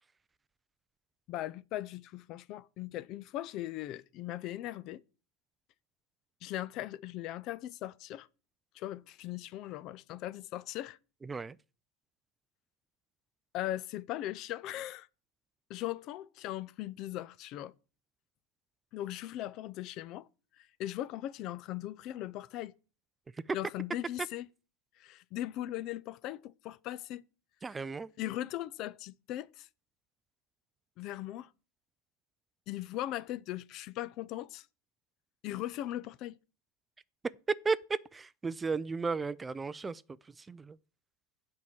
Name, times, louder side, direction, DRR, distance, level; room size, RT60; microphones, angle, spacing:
voice 1, 1.3-5.0 6.4-8.3 8.7-11.0 13.5-15.1 15.7-17.7 18.9-20.3 20.6-22.7 23.5-24.5 25.0-27.2 28.2-29.7 31.0-31.5 32.7-34.7 35.4-36.4, left 14 dB, 45° left, 0.5 m, -39 dB
voice 2, 11.2-11.6 23.3-23.6 27.6-28.1 37.5-40.8, right 4 dB, 15° right, 0.4 m, -34 dB
8.4 x 4.7 x 7.2 m
supercardioid pair, 120°, 0 cm